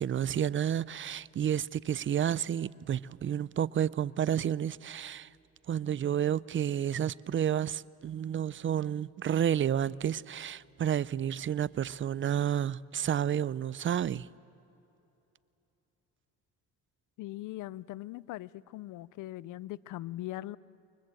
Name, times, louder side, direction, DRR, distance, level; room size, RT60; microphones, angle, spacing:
voice 1, 0.0-5.3 5.7-14.3, right 9 dB, 40° right, 0.5 m, -30 dB
voice 2, 17.2-20.6, left 16 dB, 85° left, 0.6 m, -40 dB
28.5 x 23.5 x 7.7 m
cardioid pair, 90°, 30 cm